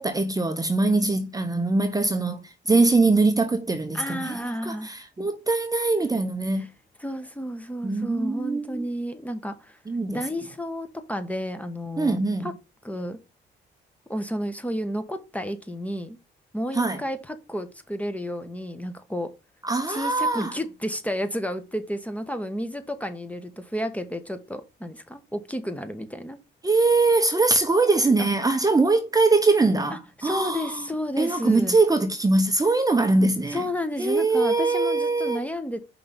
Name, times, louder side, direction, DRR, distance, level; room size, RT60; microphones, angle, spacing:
voice 1, 0.0-6.7 7.8-8.9 9.9-10.2 12.0-12.6 16.7-17.0 19.6-20.5 26.6-30.8 31.2-33.6 34.0-35.4, right 3 dB, 20° right, 0.9 m, -22 dB
voice 2, 3.9-4.9 6.6-6.7 7.0-9.8 10.1-12.5 12.8-13.2 14.1-16.2 16.5-19.3 19.9-26.4 28.2-28.3 30.2-31.8 33.5-35.9, equal, 5° left, 1.1 m, -31 dB
5.4 x 3.9 x 5.5 m
cardioid pair, 90°, 20 cm